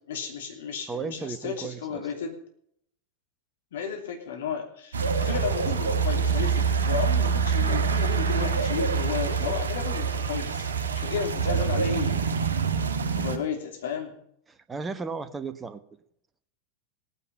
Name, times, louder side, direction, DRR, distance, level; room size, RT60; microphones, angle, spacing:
voice 1, 0.1-2.4 3.7-12.2 13.2-14.2, left 6 dB, 60° left, 3 dB, 2.9 m, -33 dB
voice 2, 0.9-2.1 14.5-15.8, right 4 dB, 15° right, 11 dB, 1.1 m, -35 dB
sound 1, 4.9-13.4, right 6 dB, 70° right, 1.6 m, -26 dB
18.0 x 9.7 x 5.5 m, 0.70 s
figure-of-eight pair, 90°, 0 cm